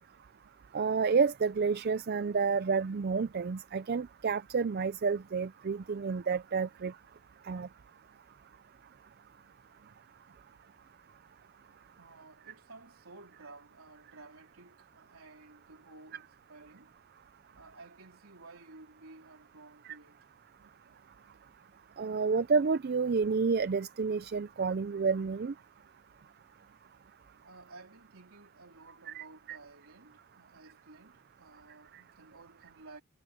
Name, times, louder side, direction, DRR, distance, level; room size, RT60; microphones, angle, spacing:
voice 1, 0.7-6.9 7.5-7.7 22.0-25.5 29.1-29.6, right 5 dB, 45° right, 0.4 m, -30 dB
voice 2, 12.0-16.9 17.6-20.2 27.4-33.0, right 3 dB, 80° right, 3.6 m, -54 dB
head